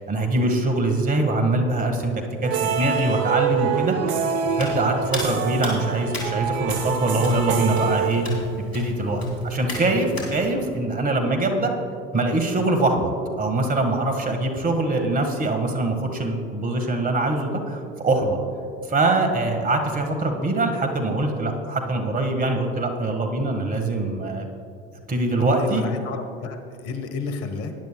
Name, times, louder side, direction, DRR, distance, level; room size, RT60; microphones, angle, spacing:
voice 1, 0.1-4.0 4.5-8.2 8.6-11.8 12.1-13.1 13.4-18.4 18.9-24.5 25.1-25.8, right 2 dB, 30° right, 5 dB, 1.7 m, -23 dB
sound 1, 2.4-8.7, right 7 dB, 55° right, 0.9 m, -26 dB
Hands, 4.5-10.3, equal, 85° left, 2.7 m, -32 dB
voice 2, 25.6-27.7, left 4 dB, 50° left, 7 dB, 1.3 m, -31 dB
18.5 x 10.5 x 2.3 m, 2.5 s
hypercardioid pair, 75°, 30 cm